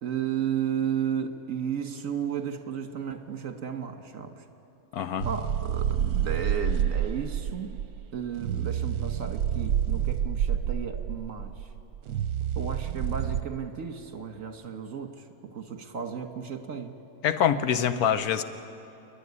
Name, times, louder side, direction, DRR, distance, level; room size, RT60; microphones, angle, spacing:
voice 1, 0.0-4.4 5.2-7.8 8.1-11.7 12.5-16.9, right 8 dB, 60° right, 7 dB, 1.7 m, -33 dB
voice 2, 4.9-5.3 17.2-18.4, left 8 dB, 80° left, 11 dB, 1.3 m, -25 dB
sound 1, 5.2-13.4, right 9 dB, 80° right, 1.2 m, -28 dB
29.0 x 11.0 x 9.6 m, 2.7 s
omnidirectional pair, 1.6 m